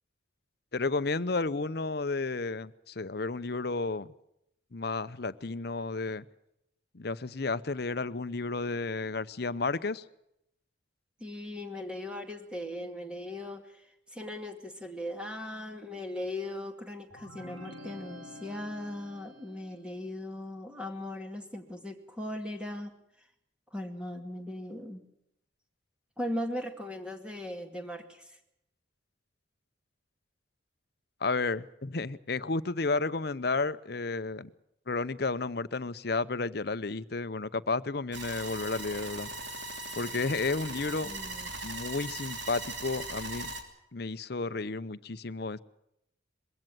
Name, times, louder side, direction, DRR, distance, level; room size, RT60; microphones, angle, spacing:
voice 1, 0.7-4.1 4.7-6.2 6.9-10.0 31.2-34.5 34.9-39.3 40.0-41.1 41.6-43.5 43.9-45.6, left 3 dB, 50° left, 15 dB, 0.7 m, -32 dB
voice 2, 11.2-23.0 23.7-25.0 26.2-28.4 41.0-41.5, left 1 dB, 5° right, 4 dB, 2.2 m, -38 dB
sound 1, 17.1-19.9, left 1 dB, 90° right, 3.1 m, -48 dB
sound 2, 38.1-43.6, right 2 dB, 65° right, 3.0 m, -39 dB
21.5 x 15.5 x 9.1 m, 0.79 s
head